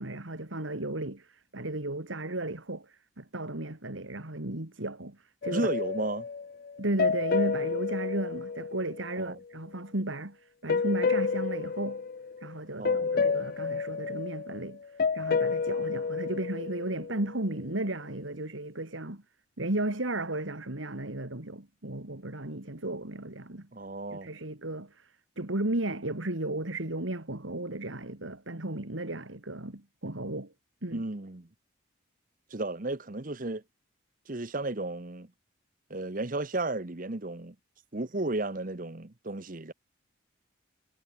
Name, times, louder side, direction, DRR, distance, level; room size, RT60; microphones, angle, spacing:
voice 1, 0.0-5.7 6.8-12.0 12.4-14.8 15.1-19.2 19.6-23.7 24.1-30.5 30.8-31.1, right 1 dB, 75° right, 2.6 m, -34 dB
sound 1, 5.4-9.3 10.7-12.6 12.8-17.4, left 5 dB, 45° left, 0.4 m, -30 dB
voice 2, 5.5-6.3 9.2-9.4 12.8-13.2 23.7-24.3 30.9-31.4 32.5-33.6 34.3-35.3 35.9-37.5 37.9-39.7, right 2 dB, 40° right, 1.1 m, -33 dB
head